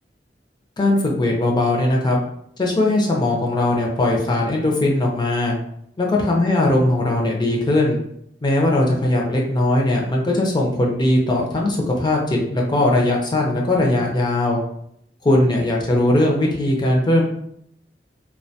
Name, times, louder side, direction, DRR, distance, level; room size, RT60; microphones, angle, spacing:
voice 1, 0.8-2.2 2.6-5.5 6.0-8.0 8.4-14.6 15.2-17.2, left 1 dB, 25° left, -1 dB, 0.5 m, -19 dB
2.3 x 2.2 x 2.7 m, 0.71 s
head